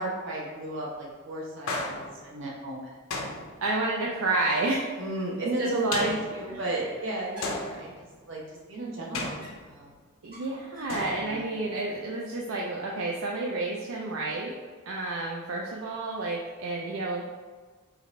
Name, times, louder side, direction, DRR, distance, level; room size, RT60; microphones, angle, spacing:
voice 1, 0.0-2.9 5.0-7.9 8.3-9.9 11.2-11.5, right 2 dB, 60° right, -4 dB, 1.1 m, -34 dB
sound 1, 1.7-2.4 3.1-3.9 5.9-6.7 7.4-8.2 9.1-10.0 10.9-11.7, left 2 dB, 75° left, 0.6 m, -35 dB
voice 2, 3.6-4.8 5.6-6.2 6.5-6.6 10.2-14.6 14.9-17.2, right 2 dB, 75° right, -2 dB, 0.4 m, -30 dB
sound 2, 4.4-5.0 5.3-5.4 5.9-6.4 7.3-7.8 9.2-9.8 10.3-11.0, equal, 45° right, 1.4 m, -48 dB
4.7 x 2.5 x 3.1 m, 1.4 s
head